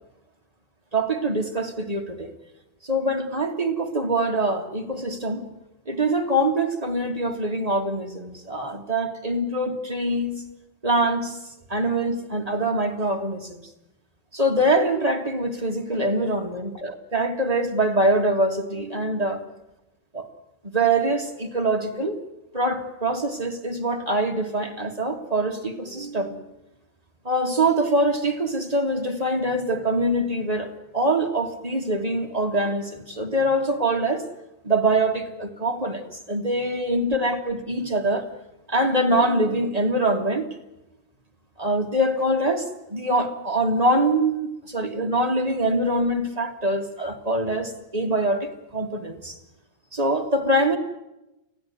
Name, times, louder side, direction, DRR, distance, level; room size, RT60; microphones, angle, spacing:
voice 1, 0.9-2.3 2.8-5.4 5.9-10.4 10.8-11.4 11.7-13.7 14.3-19.4 20.1-20.3 20.6-22.1 22.5-26.4 27.2-34.2 34.6-36.0 36.3-38.3 38.7-40.5 41.6-49.4 49.9-50.8, right 1 dB, 20° right, 3 dB, 1.2 m, -24 dB
26.0 x 16.0 x 9.5 m, 0.95 s
omnidirectional pair, 3.5 m